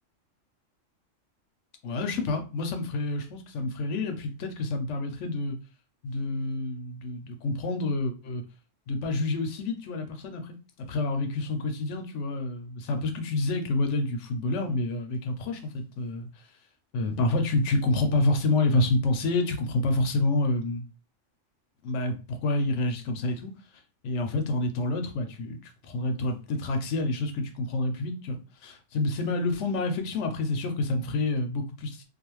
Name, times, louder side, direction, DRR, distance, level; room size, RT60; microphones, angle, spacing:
voice 1, 1.8-5.6 6.0-8.4 8.9-10.6 10.9-16.5 16.9-20.8 21.8-23.5 24.0-32.0, left 2 dB, 70° left, 0.8 m, -28 dB
2.4 x 2.4 x 3.0 m
omnidirectional pair, 1.3 m